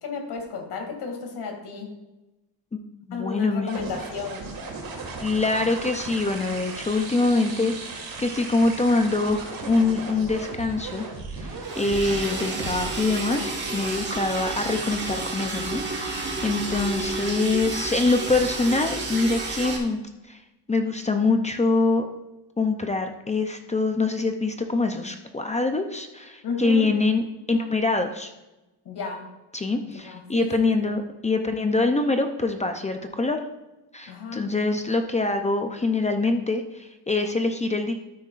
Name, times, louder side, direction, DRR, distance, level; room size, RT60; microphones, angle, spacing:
voice 1, 0.0-1.9 3.1-4.4 26.4-26.9 28.8-29.2 29.8-30.9 34.1-34.5, left 4 dB, 60° left, 2 dB, 2.5 m, -33 dB
voice 2, 3.1-3.7 5.2-11.0 11.3-20.0 20.3-20.4 20.7-22.1 22.6-28.3 29.5-33.5 33.9-37.9, left 3 dB, 15° left, 5 dB, 0.5 m, -24 dB
sound 1, 3.7-13.1, right 3 dB, 50° right, 2.0 m, -36 dB
Liquid, 11.6-19.8, right 3 dB, 25° right, 1.5 m, -31 dB
12.5 x 9.6 x 2.5 m, 1.0 s
cardioid pair, 170°, 45 cm